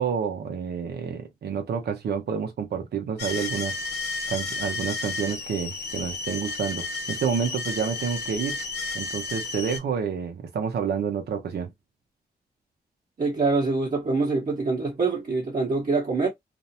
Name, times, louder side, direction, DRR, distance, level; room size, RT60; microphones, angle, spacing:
voice 1, 0.0-3.7 4.3-8.6 8.9-11.7, right 7 dB, 85° right, 0.7 m, -29 dB
sound 1, 3.2-9.8, left 3 dB, 80° left, 0.8 m, -32 dB
voice 2, 13.2-16.3, right 3 dB, 50° right, 1.0 m, -25 dB
2.5 x 2.1 x 2.7 m
cardioid pair, 60°, 17 cm